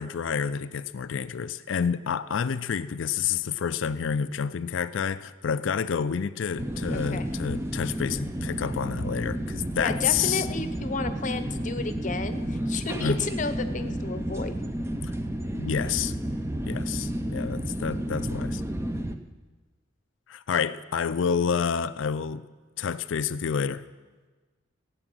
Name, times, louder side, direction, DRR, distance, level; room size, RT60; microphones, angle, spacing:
voice 1, 0.0-10.5 13.0-13.2 15.0-15.1 15.5-16.1 16.6-18.6 20.3-22.4 22.8-23.9, left 7 dB, 65° left, 14 dB, 0.4 m, -29 dB
sound 1, 6.6-19.1, right 1 dB, 15° right, 0.5 m, -31 dB
voice 2, 6.9-7.3 9.8-14.6, left 3 dB, 35° left, 10 dB, 0.8 m, -32 dB
16.0 x 8.9 x 6.2 m, 1.3 s
head